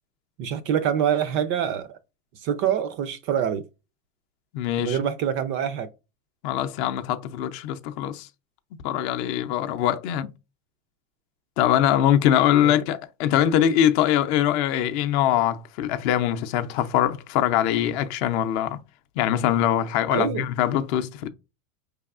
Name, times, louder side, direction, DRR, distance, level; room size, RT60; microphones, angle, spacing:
voice 1, 0.4-1.9 2.4-3.6 4.8-5.9 12.6-12.7 20.1-20.4, right 9 dB, 35° right, 0.4 m, -25 dB
voice 2, 4.5-5.0 6.4-8.3 8.8-10.3 11.6-18.8 19.2-21.3, left 11 dB, 50° left, 0.6 m, -23 dB
4.6 x 3.4 x 2.4 m
supercardioid pair, 130°, 41 cm